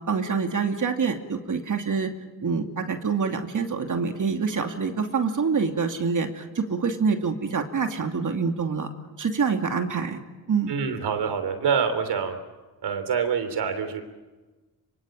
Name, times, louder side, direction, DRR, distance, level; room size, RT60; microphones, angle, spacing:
voice 1, 0.1-2.1 2.4-8.9 9.2-10.2 10.5-10.7, right 5 dB, 50° right, 5 dB, 2.7 m, -26 dB
voice 2, 10.7-12.4 12.8-14.0, right 6 dB, 75° right, 9 dB, 3.3 m, -26 dB
24.5 x 24.0 x 9.0 m, 1.2 s
cardioid pair, 70°, 41 cm